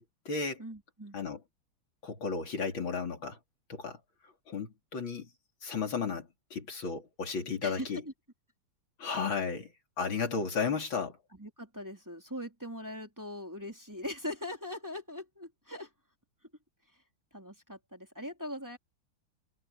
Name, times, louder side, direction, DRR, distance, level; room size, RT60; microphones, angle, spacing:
voice 1, 0.0-0.6 1.1-1.4 2.0-3.4 3.7-4.0 4.5-5.3 5.6-8.0 9.0-11.2, left 5 dB, 80° left, 3.8 m, -34 dB
voice 2, 0.6-1.2 7.6-8.1 11.4-15.9 17.3-18.8, left 1 dB, 10° right, 3.1 m, -41 dB
omnidirectional pair, 2.1 m